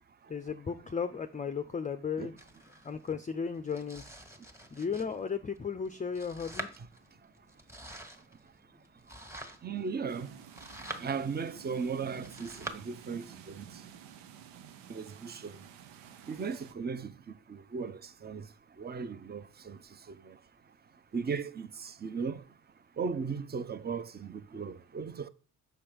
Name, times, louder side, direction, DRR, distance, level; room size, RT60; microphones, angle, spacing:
voice 1, 0.3-2.3 2.8-4.0 4.7-6.7, left 6 dB, 20° left, 0.5 m, -35 dB
Domestic sounds home sounds, 2.4-12.7, right 1 dB, 5° right, 1.2 m, -47 dB
voice 2, 9.6-10.3 11.0-13.7 14.9-15.6 16.3-18.4 18.8-19.8 20.1-20.3 21.1-22.4 23.0-25.3, right 5 dB, 25° right, 0.6 m, -37 dB
sound 1, 10.1-16.7, right 9 dB, 85° right, 0.7 m, -51 dB
6.4 x 4.4 x 5.0 m
supercardioid pair, 55°, 42 cm